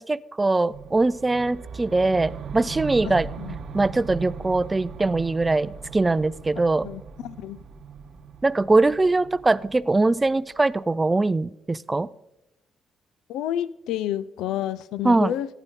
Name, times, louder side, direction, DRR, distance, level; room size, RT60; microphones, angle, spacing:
voice 1, 0.0-3.3 3.7-6.9 8.4-12.1 15.0-15.4, right 2 dB, 20° right, 0.3 m, -22 dB
sound 1, 0.7-10.8, right 6 dB, 60° right, 0.8 m, -39 dB
voice 2, 6.8-7.6 13.3-15.5, left 11 dB, 90° left, 0.4 m, -29 dB
15.0 x 9.1 x 3.7 m
cardioid pair, 90°, 0 cm